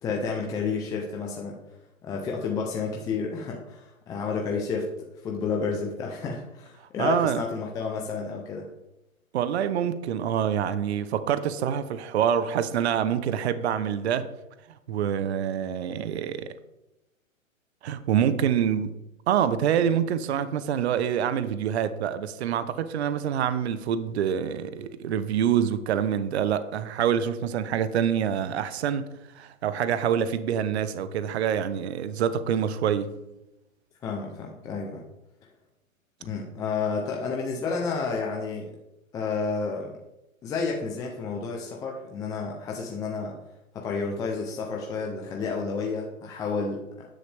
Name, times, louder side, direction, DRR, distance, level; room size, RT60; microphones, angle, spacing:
voice 1, 0.0-1.6 2.0-4.9 5.2-8.7 34.0-35.0 36.2-38.8 39.1-39.9 40.4-43.3 43.7-47.1, left 4 dB, 10° left, 0.6 m, -30 dB
voice 2, 7.0-7.4 9.3-14.3 14.9-16.5 17.8-18.9 19.3-29.1 29.3-33.2, right 9 dB, 50° right, 0.9 m, -26 dB
12.5 x 10.0 x 3.5 m
hypercardioid pair, 140°, 41 cm